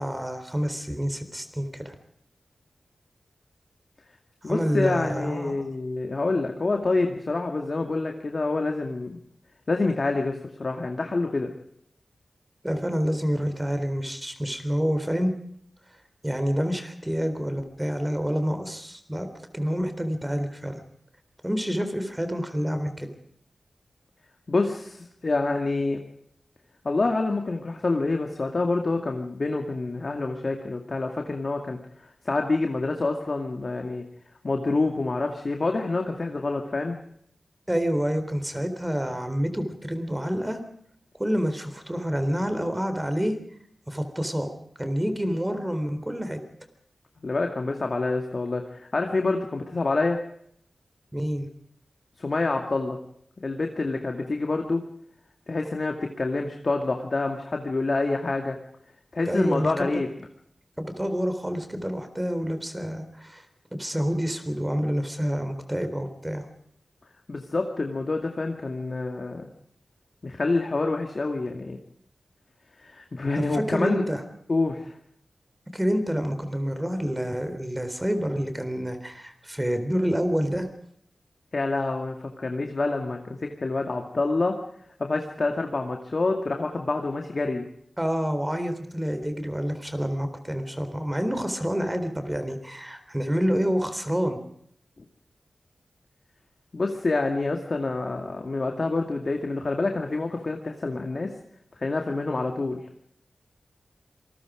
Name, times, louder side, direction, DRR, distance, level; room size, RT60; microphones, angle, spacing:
voice 1, 0.0-1.9 4.4-5.5 12.6-15.3 16.2-19.3 19.5-20.8 21.4-23.1 37.7-40.6 41.2-43.4 43.9-44.5 44.8-46.4 51.1-51.5 59.3-59.8 60.8-63.4 63.8-66.4 73.5-74.2 75.7-80.7 88.0-94.4, equal, 10° right, 8 dB, 3.9 m, -28 dB
voice 2, 4.4-9.2 9.7-11.5 24.5-26.0 26.8-31.8 32.2-34.0 34.4-37.0 47.2-50.2 52.2-53.0 53.4-54.8 55.5-58.6 59.1-60.1 67.3-69.5 70.2-71.8 72.8-74.1 74.5-74.9 81.5-84.6 85.0-87.6 96.7-101.3 101.8-102.8, left 3 dB, 50° left, 3 dB, 2.3 m, -27 dB
27.0 x 20.5 x 5.1 m, 0.70 s
wide cardioid pair, 75°, 0 cm